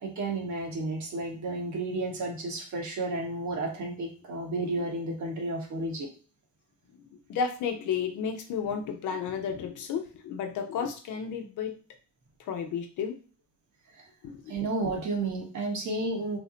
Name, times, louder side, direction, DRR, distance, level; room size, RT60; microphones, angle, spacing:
voice 1, 0.0-6.1 13.9-14.0 14.5-16.4, right 2 dB, 70° right, 1 dB, 1.3 m, -32 dB
voice 2, 7.3-11.7 12.5-13.2 14.2-14.5, left 6 dB, 80° left, 4 dB, 0.8 m, -32 dB
3.4 x 2.1 x 3.9 m, 0.36 s
cardioid pair, 90°, 30 cm